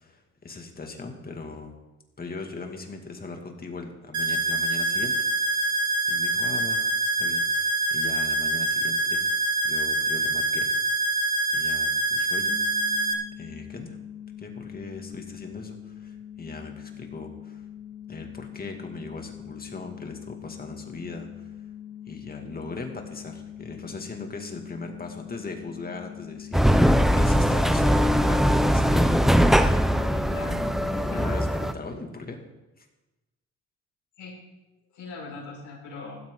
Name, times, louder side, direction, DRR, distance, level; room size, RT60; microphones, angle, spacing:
voice 1, 0.0-1.8 2.2-10.8 11.5-12.5 13.4-14.0 14.4-17.7 18.1-21.7 22.1-30.1 30.9-32.5 32.8-32.9, left 3 dB, 30° left, 3 dB, 2.4 m, -39 dB
sound 1, 4.1-13.1, right 2 dB, 70° right, 1.6 m, -25 dB
sound 2, 12.5-31.2, left 10 dB, 25° right, 5.8 m, -42 dB
sound 3, 26.5-31.7, equal, ahead, 0.7 m, -21 dB
voice 2, 30.1-31.4 34.2-34.3 34.9-36.2, left 3 dB, 75° left, -4 dB, 5.8 m, -41 dB
15.5 x 13.0 x 4.0 m, 1.0 s
cardioid pair, 90°, 30 cm